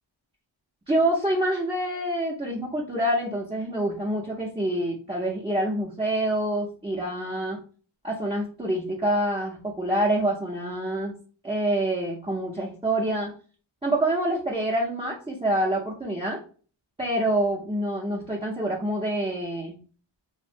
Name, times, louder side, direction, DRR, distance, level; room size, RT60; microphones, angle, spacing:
voice 1, 0.9-7.6 8.0-11.1 11.4-13.3 13.8-16.4 17.0-19.8, right 1 dB, 10° right, -5 dB, 0.5 m, -26 dB
2.7 x 2.1 x 2.5 m, 0.39 s
wide cardioid pair, 75°, 47 cm